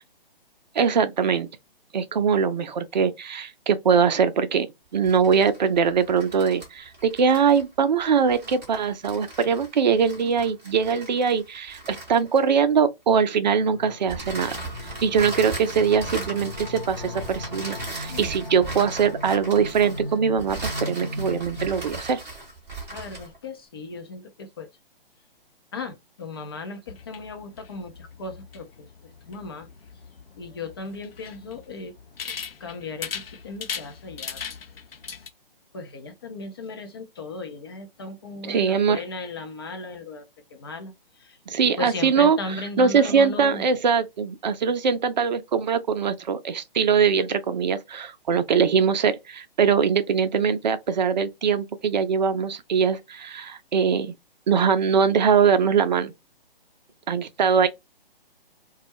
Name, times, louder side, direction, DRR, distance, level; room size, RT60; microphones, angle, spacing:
voice 1, 0.7-1.5 1.9-4.7 4.9-14.6 15.0-22.2 38.4-39.0 41.5-42.4 42.8-54.1 54.5-56.1 57.1-57.7, right 6 dB, 50° right, 0.5 m, -22 dB
sound 1, 4.9-12.7 14.1-23.4, right 2 dB, 10° right, 0.7 m, -38 dB
sound 2, 13.6-21.7, left 1 dB, 45° left, 0.8 m, -37 dB
voice 2, 22.9-24.7 25.7-28.9 29.3-29.7 30.4-31.9 32.2-32.3 32.6-34.4 35.7-40.3 40.5-40.9 41.2-41.4 41.6-43.6, left 3 dB, 25° left, 0.4 m, -36 dB
sound 3, 26.9-35.3, left 6 dB, 80° left, 0.5 m, -39 dB
2.3 x 2.0 x 2.9 m
figure-of-eight pair, 135°, 29 cm